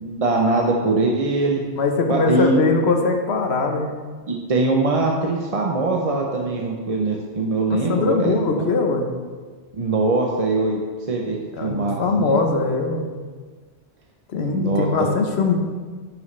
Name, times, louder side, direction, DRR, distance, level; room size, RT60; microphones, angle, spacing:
voice 1, 0.0-1.6 2.1-2.6 4.3-8.7 9.7-12.3 14.5-15.1, right 2 dB, 40° right, 0 dB, 0.6 m, -22 dB
voice 2, 1.8-3.9 7.7-9.1 11.3-13.0 14.3-15.6, left 3 dB, 60° left, 4 dB, 1.1 m, -21 dB
10.5 x 6.1 x 3.2 m, 1.5 s
omnidirectional pair, 1.2 m